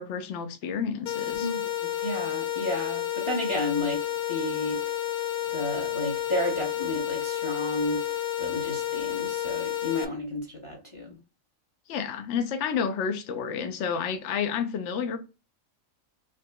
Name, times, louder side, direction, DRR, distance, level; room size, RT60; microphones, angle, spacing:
voice 1, 0.0-1.5 11.9-15.2, left 6 dB, 65° left, 0.9 m, -30 dB
sound 1, 1.1-10.1, left 12 dB, 85° left, 0.4 m, -30 dB
voice 2, 1.4-4.0 4.3-4.8 5.5-8.0 8.4-11.2, left 1 dB, 25° left, 0.8 m, -32 dB
5.0 x 2.8 x 2.3 m
omnidirectional pair, 1.4 m